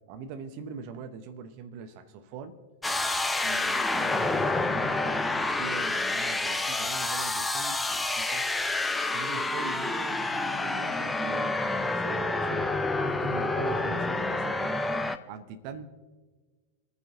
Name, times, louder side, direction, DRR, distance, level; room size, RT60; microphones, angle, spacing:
voice 1, 0.1-2.6 3.4-8.5 9.1-12.7 13.0-14.8 15.3-15.9, right 6 dB, 45° right, 8 dB, 1.2 m, -42 dB
sound 1, 2.8-15.2, left 2 dB, 10° left, 0.7 m, -28 dB
27.0 x 9.8 x 3.0 m, 1.4 s
figure-of-eight pair, 90°, 0 cm